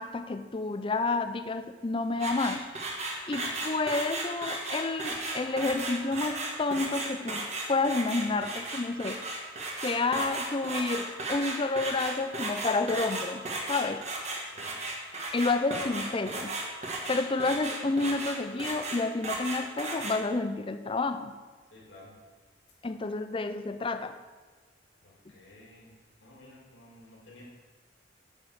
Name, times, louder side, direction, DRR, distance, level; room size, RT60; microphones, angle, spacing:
voice 1, 0.0-2.7 3.3-9.2 9.8-14.0 15.3-16.6 17.1-21.3 22.8-24.2, left 3 dB, 30° left, 9 dB, 0.5 m, -30 dB
sound 1, 2.2-20.2, right 2 dB, 35° right, 1.4 m, -35 dB
voice 2, 14.4-14.8 21.7-22.2 25.0-27.4, left 1 dB, 70° left, -3 dB, 2.5 m, -53 dB
9.0 x 5.3 x 6.5 m, 1.4 s
head